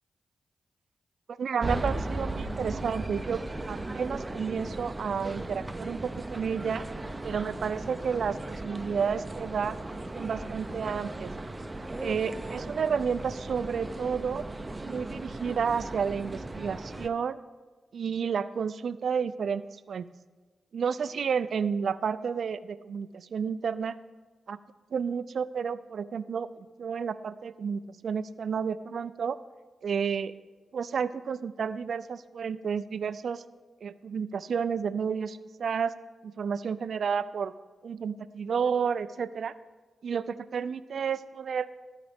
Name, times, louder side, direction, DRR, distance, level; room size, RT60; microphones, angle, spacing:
voice 1, 1.4-3.4 3.7-6.8 7.2-9.8 10.1-11.3 12.0-14.5 14.8-17.4 17.9-19.6 19.9-20.1 20.7-24.0 24.5-24.6 24.9-29.4 29.8-30.3 30.7-33.4 33.8-35.9 36.2-37.5 37.8-39.5 40.0-41.7, right 6 dB, 70° right, 15 dB, 0.3 m, -31 dB
sound 1, 1.6-17.1, right 2 dB, 25° right, 0.6 m, -37 dB
14.5 x 4.9 x 3.5 m, 1.3 s
supercardioid pair, 45°, 0 cm